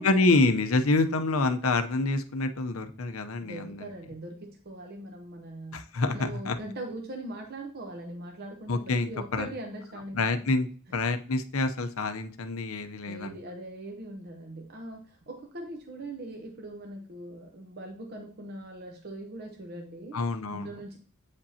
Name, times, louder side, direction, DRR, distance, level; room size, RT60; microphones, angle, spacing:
voice 1, 0.0-3.9 5.7-6.6 8.7-9.5 10.1-13.4 20.1-20.8, left 3 dB, 85° left, 8 dB, 0.7 m, -27 dB
voice 2, 3.4-5.8 6.1-10.5 13.1-20.2 20.5-21.0, right 1 dB, 50° right, 2 dB, 0.9 m, -41 dB
8.2 x 5.2 x 2.8 m, 0.42 s
head